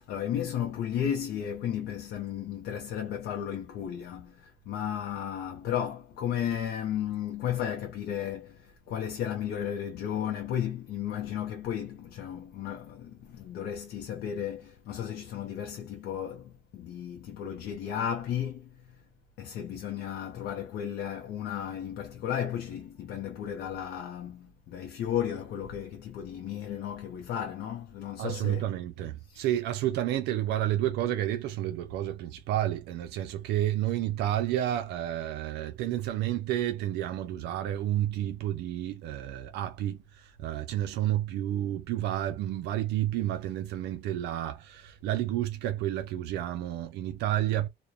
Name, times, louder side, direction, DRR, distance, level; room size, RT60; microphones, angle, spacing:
voice 1, 0.0-18.9 19.4-28.7 29.3-29.5, left 9 dB, 70° left, 0.5 m, -34 dB
voice 2, 28.2-47.7, right 12 dB, 80° right, 0.4 m, -30 dB
2.4 x 2.1 x 2.6 m
cardioid pair, 110°, 17 cm